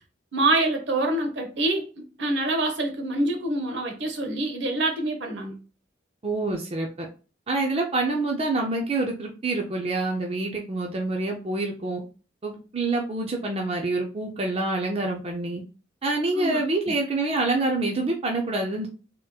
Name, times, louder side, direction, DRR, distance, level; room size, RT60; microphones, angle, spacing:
voice 1, 0.3-5.6 16.3-16.9, right 2 dB, 75° right, 0.9 m, -26 dB
voice 2, 6.2-7.1 7.5-12.0 12.4-15.6 16.0-18.9, right 2 dB, 35° right, 0.5 m, -26 dB
3.6 x 2.9 x 2.3 m
head